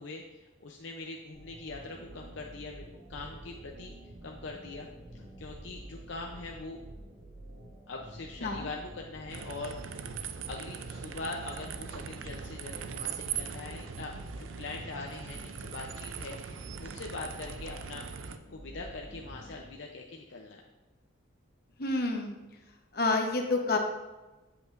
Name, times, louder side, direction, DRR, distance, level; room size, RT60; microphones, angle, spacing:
voice 1, 0.0-3.9 4.2-4.9 5.1-6.8 7.9-10.0 10.5-20.6, left 3 dB, 70° left, 0 dB, 0.6 m, -42 dB
sound 1, 1.3-19.8, right 1 dB, 55° right, 1.6 m, -49 dB
sound 2, 9.3-18.4, right 7 dB, 80° right, 0.5 m, -41 dB
voice 2, 21.8-22.3 22.9-23.8, left 3 dB, 50° left, 3 dB, 1.0 m, -28 dB
8.0 x 7.7 x 2.6 m, 1.1 s
head